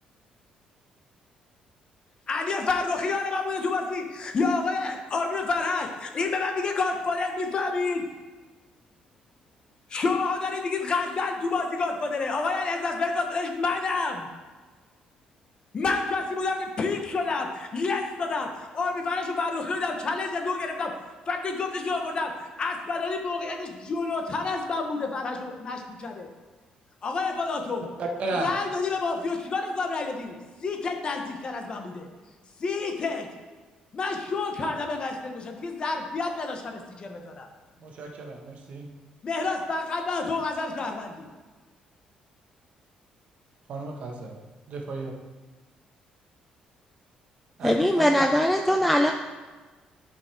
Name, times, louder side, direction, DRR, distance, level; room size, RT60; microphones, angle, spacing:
voice 1, 2.3-8.0 9.9-14.3 15.7-20.9 21.3-26.3 27.0-27.8 28.4-32.1 32.6-33.3 33.9-37.5 39.2-41.3, left 3 dB, 35° left, 3 dB, 1.1 m, -29 dB
voice 2, 28.0-28.6 37.8-38.9 43.7-44.3 44.7-45.1 47.6-48.1, right 3 dB, 55° right, 1 dB, 1.5 m, -33 dB
voice 3, 47.6-49.1, equal, 5° left, 4 dB, 0.4 m, -21 dB
11.0 x 5.3 x 4.5 m, 1.3 s
cardioid pair, 140°, 3 cm